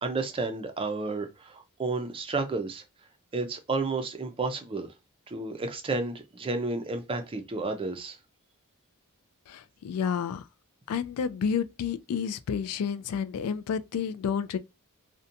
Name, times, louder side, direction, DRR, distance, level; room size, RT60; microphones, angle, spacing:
voice 1, 0.0-2.8 3.3-4.9 5.3-8.2, right 3 dB, 25° right, 0.4 m, -31 dB
voice 2, 9.5-10.4 10.9-14.6, left 7 dB, 75° left, 0.3 m, -30 dB
2.7 x 2.2 x 2.5 m
head